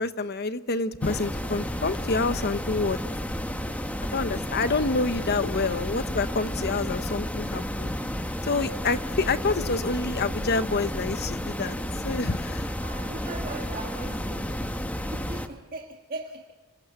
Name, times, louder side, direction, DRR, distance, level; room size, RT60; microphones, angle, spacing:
voice 1, 0.0-3.0 4.1-7.9 8.5-11.8 12.0-12.7, left 3 dB, 50° left, 12 dB, 0.9 m, -27 dB
sound 1, 1.0-15.5, equal, 5° left, 1.2 m, -32 dB
voice 2, 12.8-14.6 15.1-16.5, right 2 dB, 45° right, 1 dB, 1.8 m, -39 dB
28.0 x 19.5 x 8.2 m, 1.3 s
head